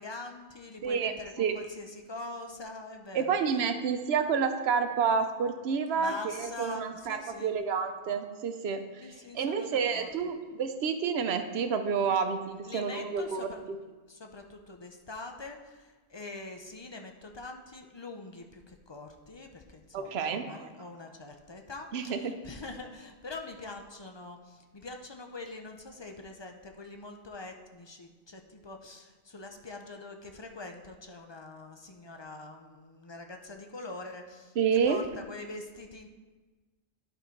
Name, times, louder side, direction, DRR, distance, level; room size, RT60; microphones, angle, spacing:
voice 1, 0.0-3.4 6.0-7.6 9.0-10.1 12.6-13.6 14.1-36.1, left 2 dB, 35° left, 4 dB, 0.4 m, -44 dB
voice 2, 0.8-1.1 1.4-1.6 3.1-9.1 9.3-13.8 19.9-20.7 21.9-22.3 34.6-35.0, right 6 dB, 70° right, 8 dB, 0.9 m, -29 dB
11.0 x 4.3 x 4.5 m, 1.3 s
omnidirectional pair, 1.2 m